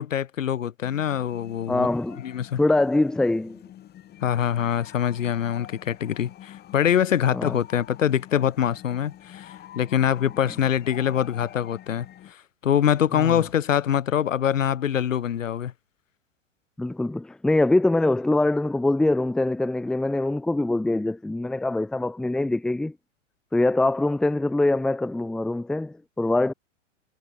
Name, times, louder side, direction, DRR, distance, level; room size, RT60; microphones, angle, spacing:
voice 1, 0.0-1.9 2.2-2.6 4.2-12.1 12.6-15.7, left 9 dB, 90° left, 1.4 m, -24 dB
sound 1, 0.8-12.3, left 12 dB, 25° left, 6.1 m, -46 dB
voice 2, 1.7-2.2 2.6-3.6 7.3-7.6 13.1-13.4 16.8-23.0 23.5-26.5, left 2 dB, ahead, 0.5 m, -23 dB
hypercardioid pair, 130°, 37 cm